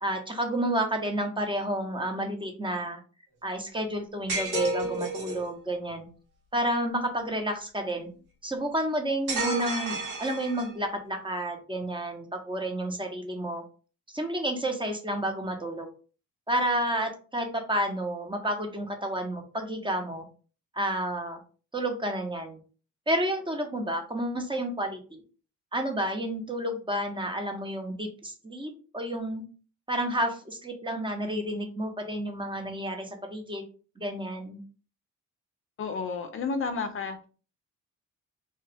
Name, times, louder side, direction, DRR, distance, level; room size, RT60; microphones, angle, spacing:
voice 1, 0.0-3.0 3.4-6.1 6.5-8.1 8.4-13.6 14.1-15.9 16.5-20.3 20.7-21.4 21.7-22.6 23.1-25.2 25.7-29.4 29.9-33.6 34.0-34.6, right 1 dB, 15° right, 5 dB, 0.8 m, -30 dB
sound 1, 4.3-5.5 9.3-10.9, right 2 dB, 80° right, 1.6 m, -31 dB
voice 2, 35.8-37.3, left 4 dB, 45° left, 7 dB, 0.5 m, -31 dB
2.8 x 2.2 x 3.3 m, 0.37 s
cardioid pair, 90°, 30 cm